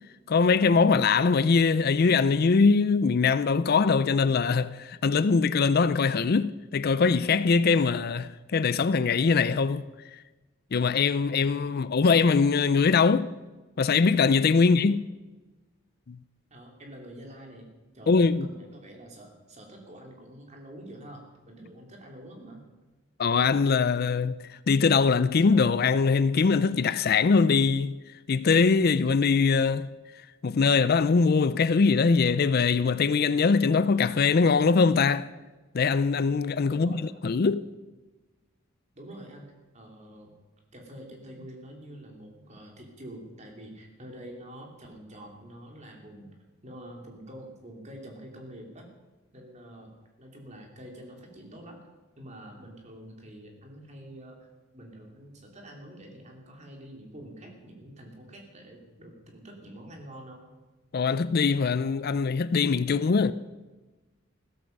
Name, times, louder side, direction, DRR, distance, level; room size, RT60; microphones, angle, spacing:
voice 1, 0.3-9.9 10.7-13.3 13.8-15.0 16.1-16.2 18.1-18.5 23.2-28.0 28.3-29.9 30.4-35.3 35.7-37.7 60.9-63.3, left 5 dB, 50° left, 0.4 m, -22 dB
voice 2, 16.5-17.7 17.9-22.6 36.7-37.1 38.9-40.3 40.7-46.3 46.6-48.9 49.3-51.8 52.2-54.5 54.7-60.4, right 1 dB, 35° right, 3.2 m, -46 dB
15.5 x 13.5 x 5.4 m
head